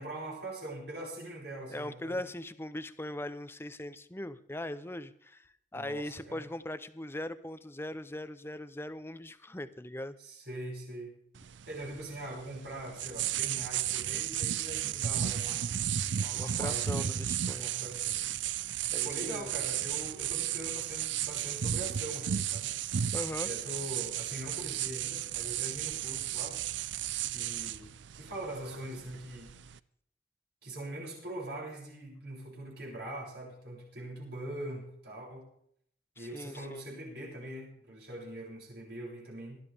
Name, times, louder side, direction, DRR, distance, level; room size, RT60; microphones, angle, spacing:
voice 1, 0.0-2.2 5.7-6.4 10.2-11.1 11.7-15.6 16.2-17.1 17.6-18.2 19.0-22.8 23.3-26.6 27.3-27.9 28.1-29.5 30.6-35.4 36.2-39.6, right 1 dB, 60° right, -3 dB, 7.3 m, -42 dB
voice 2, 1.7-10.2 16.4-17.7 18.9-19.5 23.1-23.5 36.2-36.9, left 1 dB, 15° left, 13 dB, 0.7 m, -40 dB
sound 1, 11.4-29.8, right 10 dB, 80° right, 0.5 m, -34 dB
21.0 x 13.0 x 3.6 m, 0.67 s
head